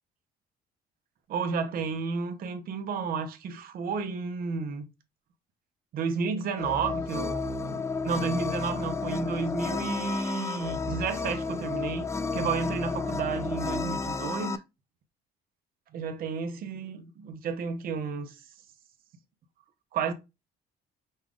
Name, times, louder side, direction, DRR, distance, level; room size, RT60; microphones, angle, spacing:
voice 1, 1.3-4.8 5.9-12.1 12.3-14.6 15.9-18.4 19.9-20.1, right 5 dB, 60° right, 0.8 m, -32 dB
sound 1, 6.6-14.6, left 4 dB, 15° left, 0.3 m, -32 dB
5.3 x 2.4 x 3.5 m
cardioid pair, 110°, 17 cm